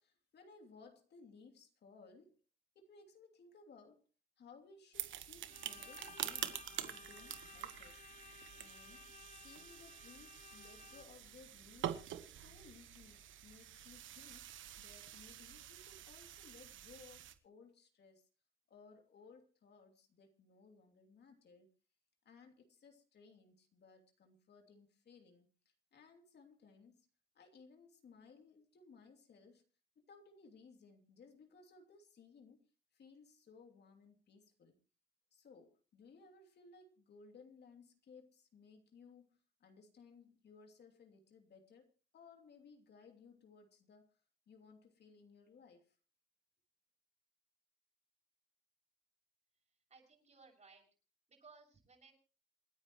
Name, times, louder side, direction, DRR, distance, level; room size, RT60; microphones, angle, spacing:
voice 1, 0.0-2.4 2.7-4.1 4.4-8.1 8.6-12.0 12.3-14.5 14.8-18.3 18.7-21.7 22.2-27.1 27.3-29.6 30.0-32.7 32.9-34.8 35.3-46.0, left 4 dB, 55° left, 2.9 m, -61 dB
sound 1, 4.9-17.3, right 11 dB, 75° right, 1.3 m, -47 dB
Bowed string instrument, 5.5-11.3, left 6 dB, 40° left, 1.1 m, -57 dB
voice 2, 49.7-50.8 51.3-52.1, right 4 dB, 35° right, 6.8 m, -62 dB
28.0 x 9.8 x 3.1 m
cardioid pair, 90°, 20 cm